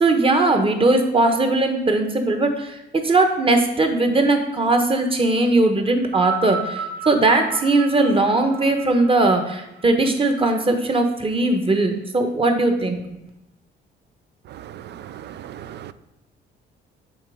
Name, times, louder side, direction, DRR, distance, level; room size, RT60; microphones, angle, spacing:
voice 1, 0.0-13.1, right 2 dB, 25° right, 1.0 m, -19 dB
sound 1, 6.0-10.5 11.4-11.5, right 5 dB, 45° right, 1.2 m, -33 dB
voice 2, 14.5-15.9, right 10 dB, 60° right, 0.4 m, -38 dB
7.3 x 3.0 x 4.9 m
cardioid pair, 90°, 20 cm